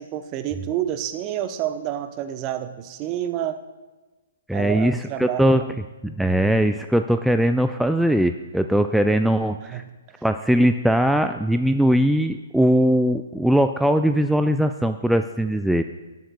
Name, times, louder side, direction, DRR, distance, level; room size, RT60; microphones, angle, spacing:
voice 1, 0.0-3.6 4.5-5.5 9.7-9.8 10.1-10.2, right 11 dB, 30° right, 9 dB, 0.8 m, -29 dB
voice 2, 4.5-5.6 6.0-9.8 10.2-15.8, equal, ahead, 7 dB, 0.4 m, -20 dB
17.5 x 11.0 x 2.3 m, 1.2 s
figure-of-eight pair, 125°, 0 cm